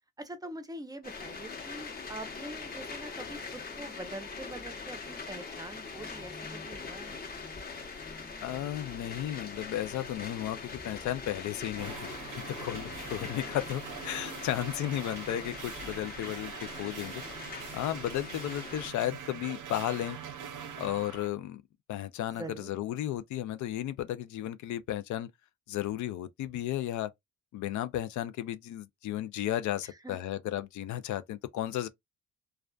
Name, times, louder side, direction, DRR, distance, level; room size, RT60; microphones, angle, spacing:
voice 1, 0.2-7.3 22.4-22.7 30.0-30.2, right 1 dB, 15° right, 0.6 m, -44 dB
sound 1, 1.0-18.9, left 4 dB, 30° left, 0.9 m, -42 dB
voice 2, 8.4-16.5 16.8-17.2 17.7-20.2 20.8-21.6 21.9-25.3 25.7-27.1 27.5-31.9, left 12 dB, 70° left, 0.5 m, -34 dB
sound 2, 11.8-21.3, right 7 dB, 80° right, 0.7 m, -43 dB
2.4 x 2.2 x 2.3 m
cardioid pair, 90°, 30 cm